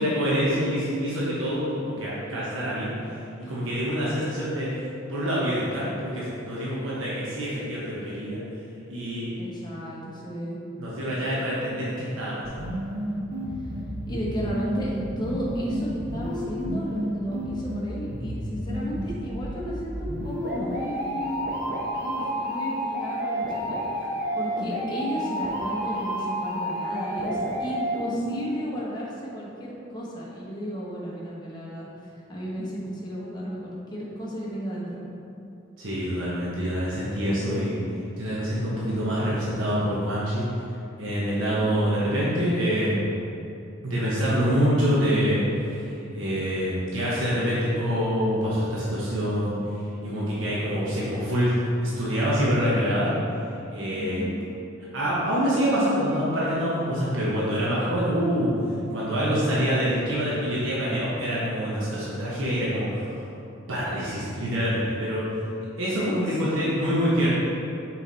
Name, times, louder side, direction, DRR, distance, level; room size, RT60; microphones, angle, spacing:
voice 1, 0.0-2.9 3.4-4.7 5.1-8.4 8.9-9.3 10.8-12.7 35.8-37.8 38.2-40.4 41.0-43.1 43.8-49.6 50.0-53.1 53.7-54.2 54.9-58.5 58.9-63.2 63.7-65.3 65.8-67.3, equal, 90° right, -8 dB, 1.1 m, -26 dB
voice 2, 9.4-10.6 14.1-21.4 22.0-23.8 24.3-35.0 54.0-54.3 66.0-66.5, equal, 20° left, -6 dB, 1.2 m, -34 dB
sound 1, 12.4-28.4, equal, 55° right, 0.9 m, -30 dB
5.7 x 4.5 x 4.1 m, 2.8 s
head